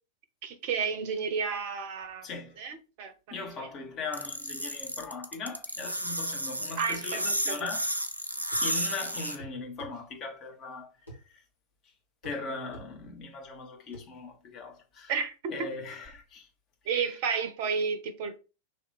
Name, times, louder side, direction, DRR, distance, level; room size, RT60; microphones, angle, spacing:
voice 1, 0.4-2.3 2.6-3.7 6.8-7.7 15.1-15.6 16.9-18.4, right 5 dB, 50° right, 0.6 m, -32 dB
voice 2, 2.2-2.6 3.3-7.9 8.6-10.9 11.3-11.4 12.2-15.1 15.5-16.5 17.0-17.1, left 4 dB, 35° left, 1.1 m, -39 dB
sound 1, 4.1-9.4, right 1 dB, 85° right, 0.4 m, -32 dB
sound 2, 8.5-8.7 9.4-10.0 11.1-11.2 12.2-12.4 12.7-12.9 13.9-14.1, right 1 dB, 80° left, 1.4 m, -46 dB
3.2 x 2.8 x 4.0 m
figure-of-eight pair, 90°, 0 cm